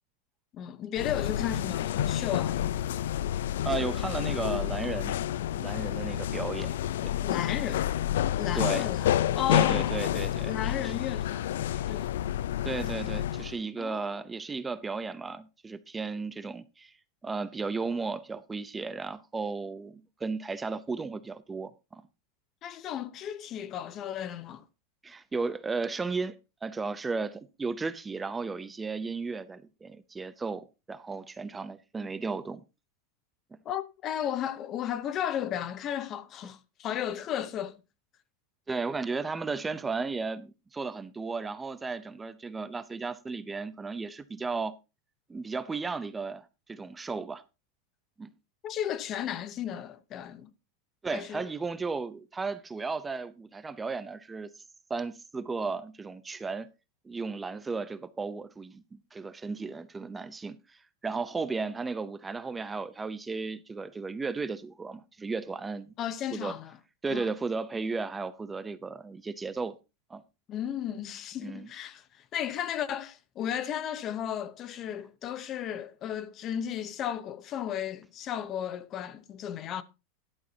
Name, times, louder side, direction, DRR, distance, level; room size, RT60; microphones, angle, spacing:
voice 1, 0.5-3.0 7.2-7.9 8.4-10.0 10.5-12.2 13.8-14.1 22.6-24.6 33.6-37.8 48.6-50.5 51.1-51.4 66.0-66.8 67.1-67.3 70.5-79.8, left 10 dB, 35° left, 0.8 m, -34 dB
sound 1, 1.0-13.6, left 11 dB, 90° left, 0.5 m, -29 dB
voice 2, 3.6-5.2 5.6-6.8 7.0-7.1 8.5-8.9 9.5-10.6 10.8-10.9 12.6-16.9 17.2-22.0 25.0-32.6 38.7-44.8 45.3-47.4 48.2-48.3 51.0-54.5 54.9-56.7 57.0-65.9 66.3-66.6 67.0-69.7 70.1-70.2 71.4-71.7, right 4 dB, 10° right, 0.6 m, -34 dB
13.0 x 11.5 x 2.8 m
supercardioid pair, 145°, 0 cm